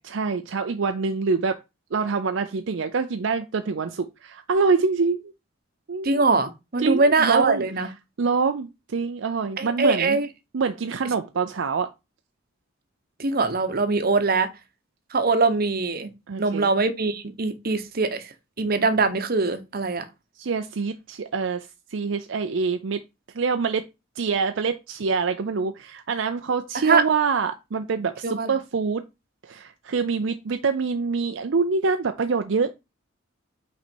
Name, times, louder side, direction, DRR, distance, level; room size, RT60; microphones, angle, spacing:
voice 1, 0.0-1.6 1.9-5.3 5.9-6.2 6.8-7.6 8.2-10.2 10.5-11.9 16.3-16.7 20.4-23.0 23.3-23.8 24.2-29.0 29.4-32.7, right 5 dB, 70° right, 0.5 m, -25 dB
voice 2, 6.0-7.9 9.6-10.3 13.2-14.5 15.1-16.1 16.4-18.3 18.6-20.0 26.8-27.0 28.2-28.6, right 3 dB, 50° right, 0.9 m, -22 dB
5.9 x 4.2 x 4.4 m
head